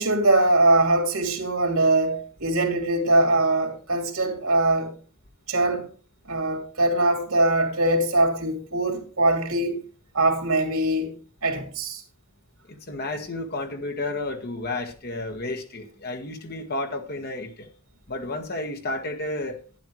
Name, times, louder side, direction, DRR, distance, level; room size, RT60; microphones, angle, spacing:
voice 1, 0.0-4.9 5.5-5.9 6.3-9.8 10.1-11.1 11.4-12.0, right 2 dB, 75° right, 2.9 m, -22 dB
voice 2, 12.7-17.7 18.1-19.6, left 2 dB, 45° left, 1.5 m, -31 dB
11.5 x 10.5 x 3.2 m
head